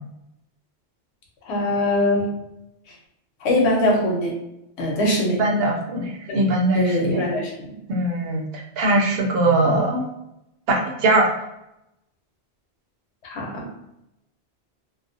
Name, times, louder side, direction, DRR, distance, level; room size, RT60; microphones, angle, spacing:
voice 1, 1.4-2.3 3.4-4.4 4.8-5.4 6.3-6.4 6.7-7.7 13.3-13.7, left 1 dB, 85° left, -1 dB, 1.0 m, -22 dB
voice 2, 5.4-7.2 7.9-8.4 8.8-10.0 10.7-11.3, right 2 dB, 70° right, -1 dB, 0.8 m, -21 dB
2.4 x 2.1 x 2.6 m, 0.86 s
omnidirectional pair, 1.1 m